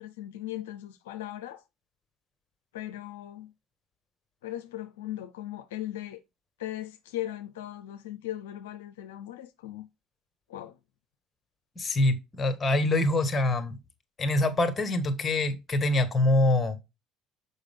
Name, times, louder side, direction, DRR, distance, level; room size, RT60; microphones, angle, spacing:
voice 1, 0.0-1.6 2.7-3.5 4.4-6.2 6.6-9.9 10.5-10.8, left 13 dB, 90° left, 0.5 m, -38 dB
voice 2, 11.8-13.8 14.2-16.8, left 2 dB, 35° left, 1.7 m, -25 dB
6.4 x 5.4 x 3.7 m
hypercardioid pair, 70°, 0 cm